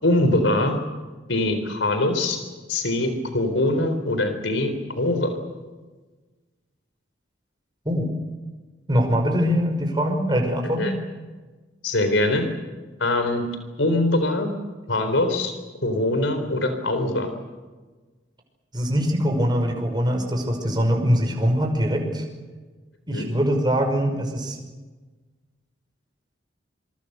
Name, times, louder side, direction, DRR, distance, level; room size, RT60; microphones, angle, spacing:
voice 1, 0.0-0.8 1.3-2.4 2.7-5.3 10.8-10.9 11.8-12.5 13.0-13.4 13.8-14.5 14.9-15.5 15.8-17.3 23.1-23.3, left 2 dB, 80° left, 7 dB, 4.0 m, -22 dB
voice 2, 8.9-10.9 18.7-22.2 23.1-24.6, equal, 25° right, 3 dB, 5.6 m, -22 dB
27.0 x 24.0 x 6.8 m, 1.3 s
head